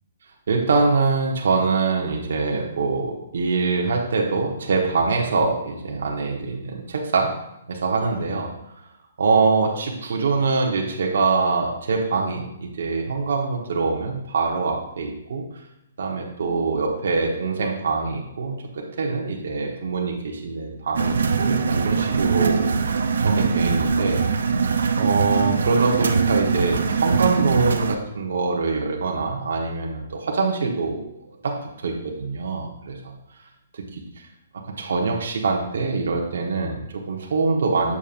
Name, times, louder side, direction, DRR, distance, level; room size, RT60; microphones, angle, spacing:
voice 1, 0.5-7.3 7.7-8.5 9.2-15.4 16.0-22.9 23.2-24.3 25.0-31.1 31.4-31.6 31.8-33.1 33.7-33.8 34.7-38.0, right 4 dB, 55° right, 0 dB, 1.1 m, -24 dB
sound 1, 20.9-27.9, right 5 dB, 70° right, 0.6 m, -22 dB
7.0 x 6.4 x 2.5 m, 0.82 s
hypercardioid pair, 180°, 0 cm